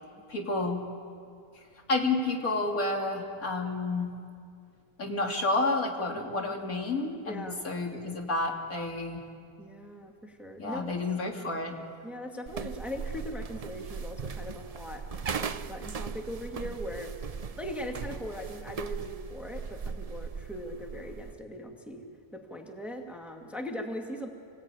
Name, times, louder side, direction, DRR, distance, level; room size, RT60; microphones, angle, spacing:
voice 1, 0.3-0.8 1.9-4.1 5.0-9.2 10.6-11.8, left 2 dB, 65° left, 1 dB, 3.0 m, -30 dB
voice 2, 6.1-6.5 7.2-7.6 9.6-11.0 12.0-15.0 15.4-17.1 17.6-22.0 22.3-24.3, equal, ahead, 2 dB, 1.9 m, -40 dB
sound 1, 12.5-21.4, right 5 dB, 55° right, 0.4 m, -38 dB
27.0 x 19.5 x 9.1 m, 2.3 s
omnidirectional pair, 1.6 m